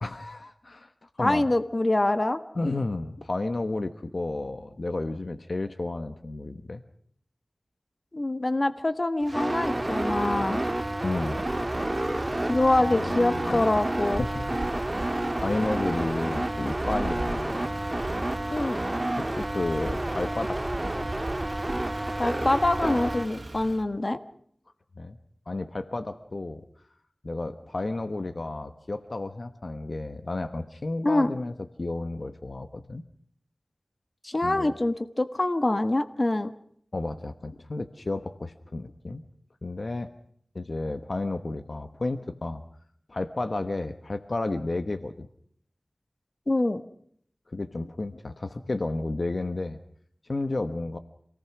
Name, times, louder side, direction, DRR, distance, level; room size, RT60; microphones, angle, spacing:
voice 1, 0.0-1.4 2.5-6.8 11.0-11.5 12.2-13.8 14.2-14.5 14.8-15.0 15.4-17.8 19.2-21.1 25.0-25.2 25.5-26.6 27.2-31.5 31.8-33.0 34.4-34.7 36.9-39.2 39.6-40.1 40.5-42.6 43.1-45.3 47.5-49.8 50.3-51.0, left 2 dB, 60° left, 9 dB, 1.3 m, -32 dB
voice 2, 1.2-2.4 8.1-10.6 12.5-14.2 18.5-18.8 22.2-24.2 31.0-31.3 34.2-36.5 46.5-46.8, left 2 dB, 40° left, 9 dB, 1.5 m, -25 dB
Motor vehicle (road), 9.2-23.8, right 2 dB, 50° right, 3.1 m, -38 dB
sound 1, 9.3-23.3, right 1 dB, 30° right, 1.8 m, -30 dB
27.5 x 18.5 x 6.1 m, 0.63 s
wide cardioid pair, 60°, 0 cm